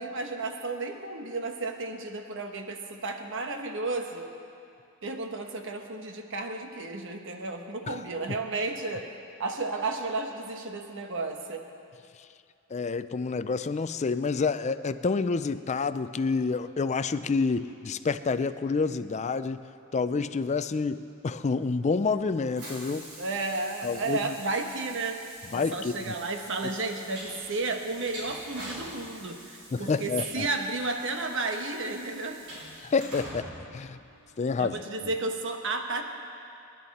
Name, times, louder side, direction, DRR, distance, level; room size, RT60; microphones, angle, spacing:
voice 1, 0.0-4.3 5.0-9.1 9.4-11.7 23.2-25.2 25.5-32.4 34.6-36.0, right 3 dB, 60° right, 4 dB, 1.2 m, -33 dB
voice 2, 12.7-19.6 19.9-23.1 23.8-24.3 25.5-26.1 29.7-30.5 32.9-33.5 33.7-34.0 34.4-34.8, left 4 dB, 30° left, 12 dB, 0.4 m, -28 dB
Train, 21.4-34.6, right 1 dB, 80° right, 4.9 m, -46 dB
26.0 x 11.0 x 4.2 m, 2.5 s
head